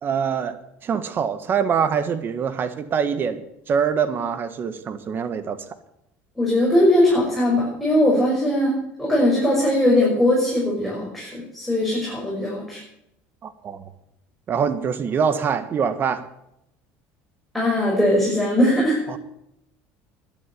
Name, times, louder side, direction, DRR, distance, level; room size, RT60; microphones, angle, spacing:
voice 1, 0.0-5.6 13.4-13.8 14.5-16.2 19.1-19.2, right 7 dB, 40° right, 12 dB, 1.4 m, -24 dB
voice 2, 6.4-12.8 17.5-19.0, left 1 dB, ahead, -5 dB, 6.3 m, -20 dB
12.5 x 11.0 x 8.3 m, 0.81 s
supercardioid pair, 110°, 6 cm